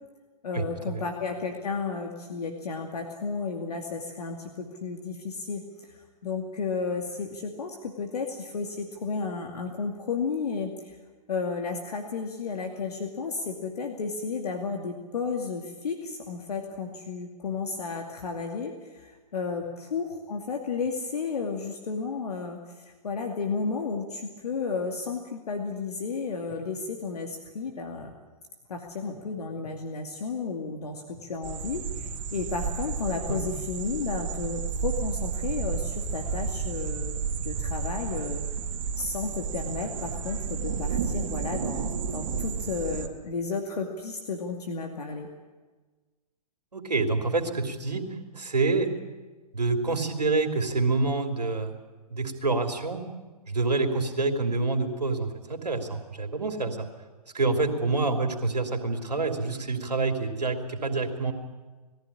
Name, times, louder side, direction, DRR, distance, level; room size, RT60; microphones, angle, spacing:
voice 1, 0.4-5.6 6.2-11.0 11.3-28.1 28.7-38.4 39.0-45.3, left 4 dB, 70° left, 4 dB, 2.4 m, -33 dB
sound 1, 31.4-43.1, right 6 dB, 50° right, 2.2 m, -32 dB
voice 2, 46.7-48.1 48.3-48.9 49.5-51.8 52.1-53.0 53.5-56.9 57.3-61.3, right 3 dB, 90° right, 5 dB, 3.1 m, -27 dB
20.5 x 14.5 x 10.0 m, 1.3 s
hypercardioid pair, 120°, 20 cm